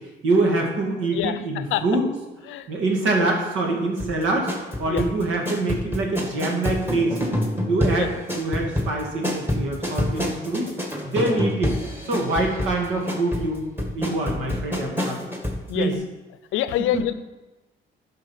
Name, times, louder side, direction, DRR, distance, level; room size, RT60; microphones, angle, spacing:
voice 1, 0.2-2.0 2.7-7.2 7.7-10.7 11.0-11.7 12.0-13.6 13.9-15.2 15.7-16.0 16.9-17.1, right 2 dB, 85° right, 1 dB, 2.2 m, -25 dB
voice 2, 1.1-1.8 2.5-2.7 3.2-3.3 4.9-5.0 8.0-8.1 11.2-11.4 15.7-16.0 16.5-17.1, left 13 dB, 90° left, 13 dB, 0.6 m, -26 dB
sound 1, 4.0-15.6 15.9-16.0, left 1 dB, 10° right, 1.9 m, -27 dB
11.0 x 5.5 x 5.5 m, 1.1 s
cardioid pair, 90°, 20 cm